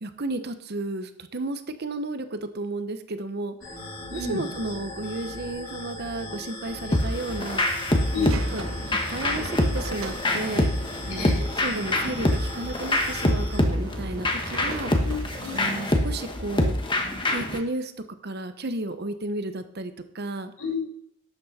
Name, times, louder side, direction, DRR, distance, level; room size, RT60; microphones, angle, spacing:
voice 1, 0.0-3.5 4.1-7.9 8.2-10.7 11.0-14.9 15.5-16.7 17.3-17.9 18.2-20.5, right 2 dB, 50° right, 10 dB, 0.9 m, -33 dB
sound 1, 3.6-13.6, left 2 dB, 40° left, 4.6 m, -39 dB
voice 2, 4.1-4.4 6.9-7.0 8.1-8.4 11.2-11.3 15.0-15.6 20.6-20.8, left 4 dB, 85° left, -2 dB, 4.9 m, -30 dB
sound 2, 6.9-17.6, left 1 dB, 20° left, 1.2 m, -26 dB
sound 3, 7.3-15.7, right 3 dB, 70° right, 1.1 m, -41 dB
12.5 x 8.4 x 4.2 m, 0.69 s
head